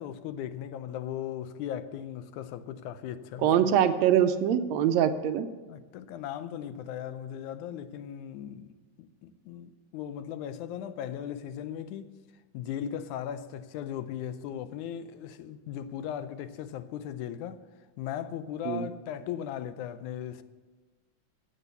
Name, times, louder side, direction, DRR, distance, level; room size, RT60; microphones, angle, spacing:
voice 1, 0.0-3.5 5.7-12.1 12.5-17.6 18.0-20.4, left 10 dB, 85° left, 2.1 m, -37 dB
voice 2, 3.4-5.5 18.7-18.9, right 9 dB, 75° right, 1.8 m, -23 dB
16.0 x 8.3 x 6.8 m
omnidirectional pair, 3.4 m